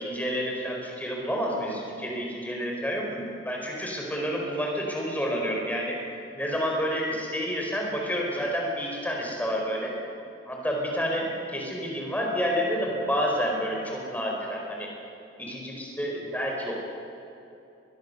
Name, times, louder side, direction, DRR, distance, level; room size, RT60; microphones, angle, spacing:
voice 1, 0.0-6.0 6.3-9.9 10.5-14.9 15.4-16.7, equal, 10° left, -1 dB, 4.9 m, -29 dB
22.5 x 21.5 x 6.9 m, 2.8 s
head